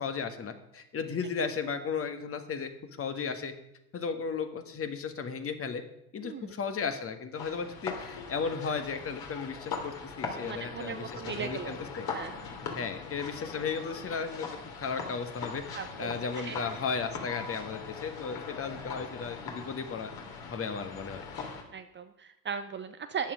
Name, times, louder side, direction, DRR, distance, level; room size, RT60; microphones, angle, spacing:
voice 1, 0.0-2.7 3.0-3.5 3.9-5.8 6.1-12.1 12.7-14.5 14.8-20.1 20.5-21.2, left 5 dB, 25° left, 8 dB, 1.7 m, -35 dB
voice 2, 6.2-6.5 10.4-11.8 12.1-12.4 15.7-16.1 16.4-16.6 21.7-23.3, right 7 dB, 25° right, 8 dB, 0.7 m, -38 dB
sound 1, 7.4-21.6, left 5 dB, 45° left, 3.1 m, -41 dB
13.5 x 9.4 x 5.1 m, 0.86 s
hypercardioid pair, 75°, 49 cm